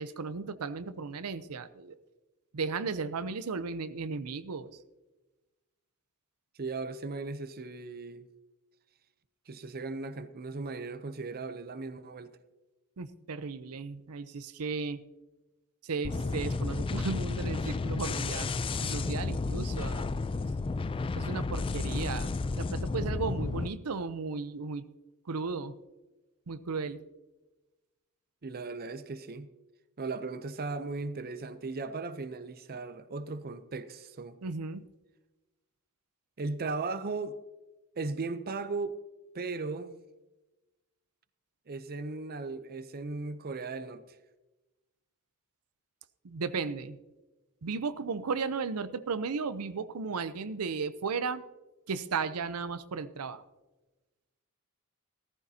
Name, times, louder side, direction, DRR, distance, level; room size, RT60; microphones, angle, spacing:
voice 1, 0.0-2.0 2.5-4.8 13.0-15.0 15.8-18.5 18.8-20.2 21.1-22.3 22.6-24.8 25.3-25.8 26.5-27.0 34.4-34.8 46.2-47.0 47.6-51.4 51.9-53.4, right 4 dB, 85° right, 0.6 m, -35 dB
voice 2, 6.6-8.3 9.5-12.4 28.4-29.5 30.0-34.4 36.4-37.4 38.0-39.0 39.3-40.0 41.7-44.2, right 3 dB, 45° right, 0.6 m, -37 dB
sound 1, 16.0-23.7, left 3 dB, 25° left, 0.3 m, -32 dB
15.0 x 14.5 x 2.8 m
head